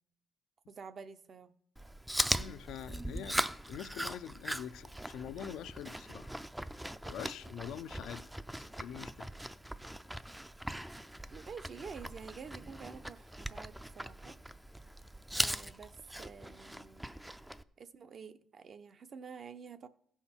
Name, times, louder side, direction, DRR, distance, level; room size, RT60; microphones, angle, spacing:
voice 1, 0.7-1.5 11.3-14.4 15.3-17.1 17.8-19.9, right 6 dB, 50° right, 0.7 m, -49 dB
Chewing mastication, 1.8-17.6, right 1 dB, 5° right, 0.4 m, -40 dB
voice 2, 2.3-3.4 3.7-6.3 7.0-9.3, left 9 dB, 85° left, 0.4 m, -45 dB
15.5 x 5.7 x 4.4 m
cardioid pair, 90°, 0 cm